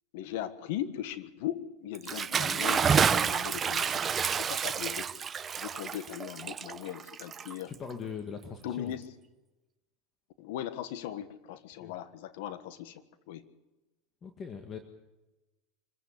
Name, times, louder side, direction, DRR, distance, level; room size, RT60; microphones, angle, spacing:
voice 1, 0.1-4.0 4.4-5.1 5.6-7.7 8.6-9.0 10.4-13.4, left 11 dB, 70° left, 12 dB, 1.5 m, -38 dB
Bathtub (filling or washing) / Splash splatter, 1.9-7.9, right 7 dB, 30° right, 0.8 m, -29 dB
voice 2, 7.7-8.9 11.8-11.9 14.2-14.8, left 6 dB, 30° left, 5 dB, 1.9 m, -40 dB
25.0 x 15.0 x 8.4 m, 1.1 s
hypercardioid pair, 100°, 0 cm